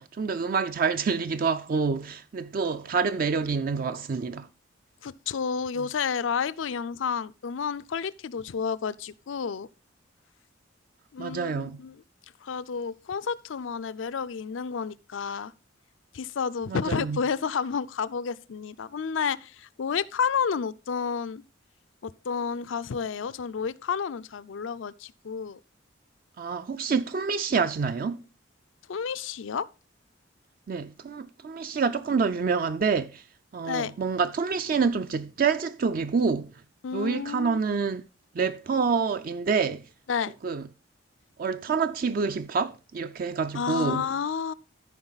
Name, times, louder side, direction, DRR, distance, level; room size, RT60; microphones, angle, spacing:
voice 1, 0.0-4.5 11.2-11.8 16.7-17.2 26.4-28.2 30.7-33.2 33.5-36.5 36.9-38.0 38.3-39.9 40.4-40.6 41.4-44.1, right 5 dB, 45° right, 0.4 m, -27 dB
voice 2, 5.0-9.7 11.1-12.0 12.4-15.5 16.1-21.4 22.0-25.6 28.9-29.7 33.7-34.0 36.8-37.6 40.1-40.3 43.5-44.5, left 6 dB, 80° left, 0.5 m, -30 dB
13.5 x 5.2 x 4.0 m
head